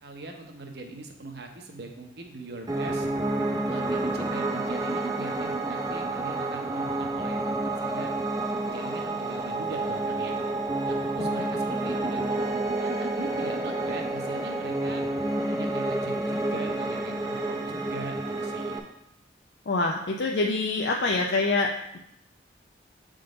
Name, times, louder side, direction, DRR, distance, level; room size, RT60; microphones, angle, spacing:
voice 1, 0.0-3.1 3.7-8.1 8.6-10.4 10.9-12.3 12.8-15.0 15.4-18.8, right 2 dB, 60° right, 3 dB, 0.9 m, -41 dB
Piano, 2.7-18.8, right 2 dB, 20° right, 0.5 m, -29 dB
voice 2, 19.7-22.0, left 3 dB, 65° left, 0 dB, 0.5 m, -26 dB
7.8 x 3.8 x 3.8 m, 0.81 s
head